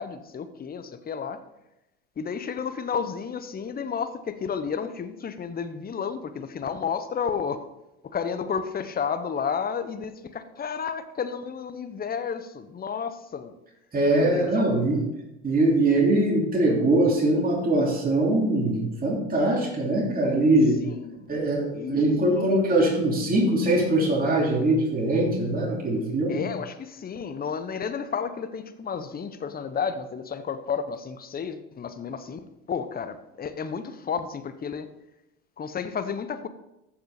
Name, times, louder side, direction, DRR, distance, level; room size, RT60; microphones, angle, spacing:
voice 1, 0.0-1.4 2.2-7.7 8.1-13.5 14.2-14.6 20.8-21.3 21.7-22.0 22.3-22.5 26.3-34.9 35.6-36.5, left 6 dB, 25° left, 11 dB, 1.0 m, -32 dB
voice 2, 13.9-15.0 15.4-20.8 21.3-26.4, right 1 dB, 25° right, -2 dB, 3.1 m, -22 dB
14.0 x 5.9 x 4.2 m, 0.91 s
hypercardioid pair, 65°, 34 cm